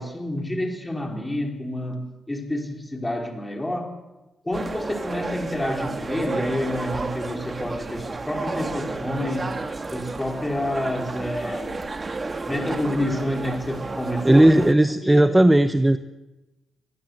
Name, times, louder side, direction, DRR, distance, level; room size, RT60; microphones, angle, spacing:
voice 1, 0.0-3.9 4.4-9.5 9.9-11.8 12.5-14.5 15.0-15.2, left 1 dB, 10° left, 2 dB, 4.3 m, -28 dB
sound 1, 4.5-14.7, right 3 dB, 25° right, 1.5 m, -31 dB
voice 2, 14.2-16.0, right 1 dB, 10° right, 10 dB, 0.8 m, -16 dB
23.5 x 19.5 x 7.9 m, 1.1 s
cardioid pair, 125°, 0 cm